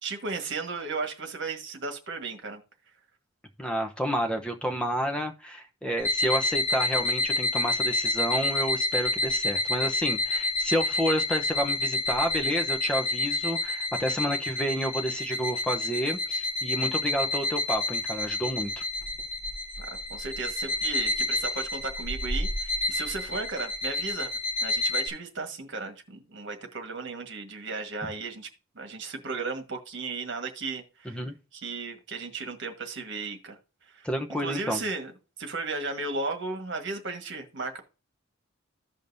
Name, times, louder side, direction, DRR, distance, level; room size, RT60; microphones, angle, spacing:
voice 1, 0.0-2.6 19.8-24.3 24.6-28.5 28.7-31.2 31.5-33.6 33.9-34.1 34.4-35.1 35.4-37.8, right 3 dB, 60° right, 5 dB, 1.5 m, -35 dB
voice 2, 3.6-18.8 31.0-31.3 34.0-34.8, equal, 5° left, 4 dB, 0.8 m, -30 dB
sound 1, 6.0-25.1, left 2 dB, 35° left, 3.1 m, -29 dB
15.0 x 5.2 x 2.7 m, 0.32 s
head